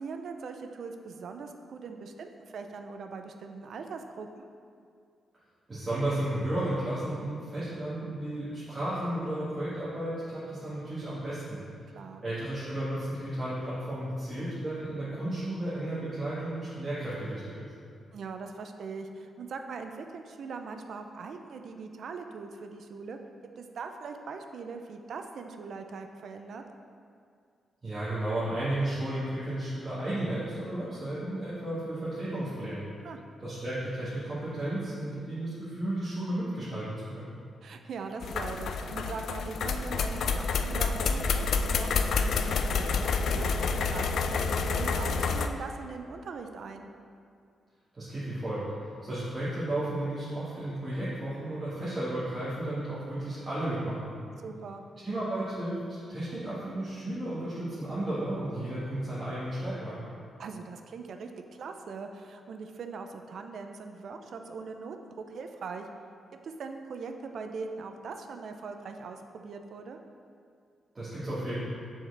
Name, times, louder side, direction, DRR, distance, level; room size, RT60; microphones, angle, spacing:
voice 1, 0.0-4.5 11.9-12.2 18.1-23.2 23.6-26.6 33.0-33.2 37.6-46.9 54.4-54.8 60.4-61.3 61.6-65.9 66.4-70.0, right 4 dB, 60° right, 6 dB, 0.4 m, -41 dB
voice 2, 5.7-11.6 12.2-17.7 27.8-32.9 33.4-37.3 48.0-48.6 49.0-54.3 55.0-55.8 56.1-60.0 70.9-71.6, right 1 dB, 20° right, -12 dB, 1.6 m, -33 dB
sound 1, 38.2-45.5, left 4 dB, 70° left, 0.3 m, -28 dB
7.1 x 4.7 x 3.3 m, 2.3 s
wide cardioid pair, 135°, 0 cm